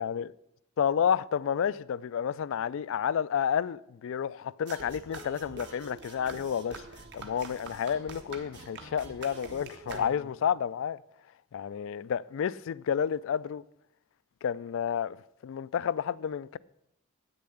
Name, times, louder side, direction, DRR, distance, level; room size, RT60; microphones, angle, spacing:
voice 1, 0.0-0.3 0.8-6.8 7.1-11.0 11.5-13.6 14.4-15.2 15.4-16.6, left 8 dB, 65° left, 0.3 m, -30 dB
sound 1, 4.7-10.5, right 3 dB, 55° right, 1.2 m, -45 dB
8.7 x 6.8 x 7.8 m
head